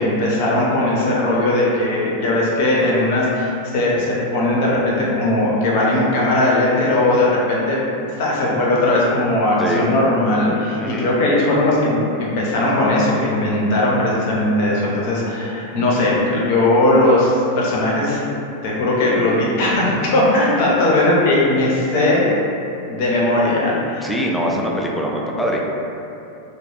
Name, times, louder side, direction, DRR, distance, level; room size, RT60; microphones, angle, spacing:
voice 1, 0.0-7.8 8.2-18.2 18.6-22.3 22.9-24.1, left 1 dB, 45° left, -5 dB, 0.6 m, -18 dB
voice 2, 9.6-9.9 10.8-11.4 24.0-25.6, equal, 5° left, -2 dB, 0.3 m, -23 dB
2.3 x 2.1 x 3.3 m, 2.7 s
figure-of-eight pair, 90°, 0 cm